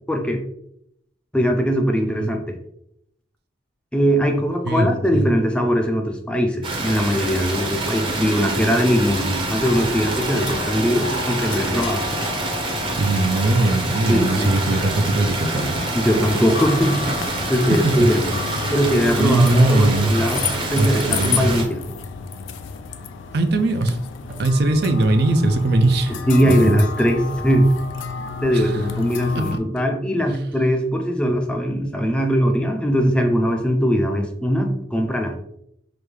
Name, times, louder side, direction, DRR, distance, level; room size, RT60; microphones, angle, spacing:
voice 1, 0.1-0.4 1.3-2.5 3.9-12.0 14.1-14.5 15.9-17.1 17.5-18.3 18.7-20.4 20.7-21.8 26.1-27.7 28.4-35.4, equal, 5° left, 3 dB, 0.4 m, -20 dB
voice 2, 4.7-5.3 13.0-15.9 17.7-18.0 18.6-18.7 19.2-20.1 20.7-21.5 23.3-24.0 24.3-26.1 26.4-26.8 28.5-28.8 29.3-29.6, right 2 dB, 60° right, 8 dB, 0.4 m, -20 dB
sound 1, 6.6-21.6, right 2 dB, 30° right, 0.7 m, -26 dB
sound 2, 9.6-29.6, left 5 dB, 85° left, 0.4 m, -31 dB
5.1 x 2.2 x 3.1 m, 0.74 s
head